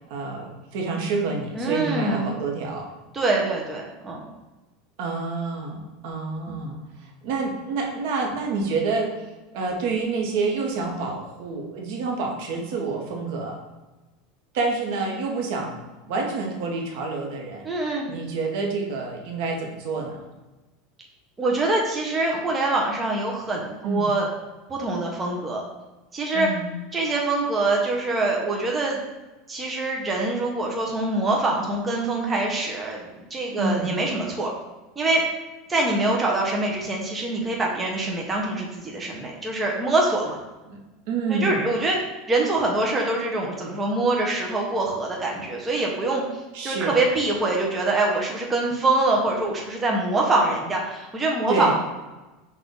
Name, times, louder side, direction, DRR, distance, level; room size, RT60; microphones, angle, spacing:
voice 1, 0.0-2.9 5.0-6.8 7.2-13.6 14.5-15.8 16.1-17.6 18.1-20.2 23.8-24.1 26.3-26.7 33.6-33.9 40.7-40.8 41.1-41.6 46.5-46.9 51.5-51.7, right 3 dB, 65° right, 1 dB, 1.0 m, -28 dB
voice 2, 1.6-2.3 3.1-4.3 17.6-18.1 21.4-24.3 24.7-25.6 26.1-26.5 26.9-29.0 29.5-34.5 35.0-35.2 35.7-40.4 41.3-42.0 42.3-46.2 46.6-51.7, right 2 dB, 15° right, -2 dB, 0.7 m, -24 dB
5.7 x 2.5 x 3.6 m, 1.1 s
supercardioid pair, 150°, 0 cm